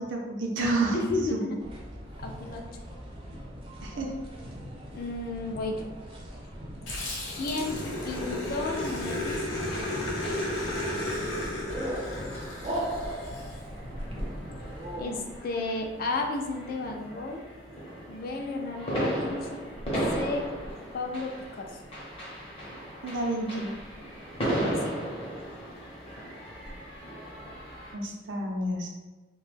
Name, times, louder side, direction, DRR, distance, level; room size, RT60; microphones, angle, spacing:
voice 1, 0.0-1.0 1.3-1.4 3.8-4.1 15.1-15.2 23.0-23.7 27.9-28.9, right 2 dB, 85° right, 1 dB, 0.5 m, -30 dB
voice 2, 0.9-1.5 2.2-2.6 4.9-5.9 7.3-9.6 15.0-17.4 18.1-19.6 20.1-20.5 20.9-21.7 24.8-24.9, left 3 dB, 50° left, 2 dB, 0.3 m, -33 dB
sound 1, 1.6-15.0, equal, 30° right, 0.4 m, -39 dB
Growling, 6.9-13.5, left 1 dB, 85° left, 0.6 m, -33 dB
sound 2, 9.6-27.9, right 1 dB, 30° left, 0.8 m, -36 dB
2.2 x 2.0 x 3.2 m, 1.2 s
head